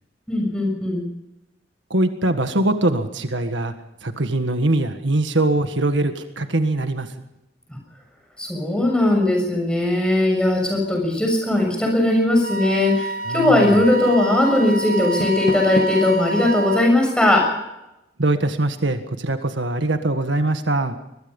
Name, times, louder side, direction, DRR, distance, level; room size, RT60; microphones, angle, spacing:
voice 1, 0.3-1.0 7.7-7.8 8.4-17.5, left 1 dB, 5° left, 2 dB, 6.7 m, -19 dB
voice 2, 1.9-3.7 4.0-7.1 13.3-13.8 18.2-21.0, right 2 dB, 80° right, 8 dB, 1.7 m, -22 dB
Wind instrument woodwind instrument, 12.4-16.9, right 2 dB, 50° right, 1.5 m, -28 dB
Door, 14.9-16.2, left 1 dB, 45° left, 1.8 m, -29 dB
23.0 x 21.5 x 5.5 m, 0.91 s
head